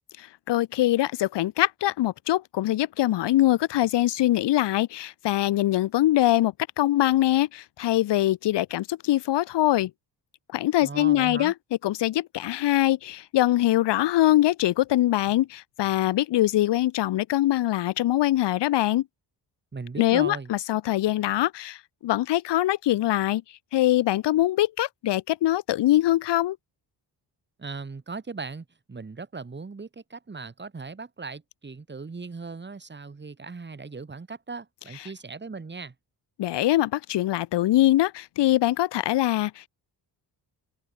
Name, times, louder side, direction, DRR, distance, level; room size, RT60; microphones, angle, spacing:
voice 1, 0.2-9.9 10.5-11.5 11.8-19.1 20.0-23.4 23.7-26.6 36.4-39.7, left 14 dB, 80° left, 0.8 m, -23 dB
voice 2, 10.8-11.5 19.7-20.5 27.6-35.9, right 4 dB, 25° right, 6.9 m, -38 dB
wide cardioid pair, 160°, 41 cm